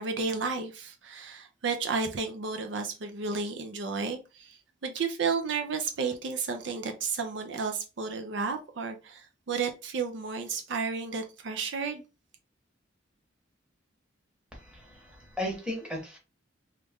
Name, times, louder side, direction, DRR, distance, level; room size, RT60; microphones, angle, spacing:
voice 1, 0.0-12.0, right 5 dB, 70° right, 0.5 m, -32 dB
voice 2, 14.5-16.2, left 1 dB, 5° right, 1.0 m, -36 dB
3.0 x 2.4 x 3.5 m
head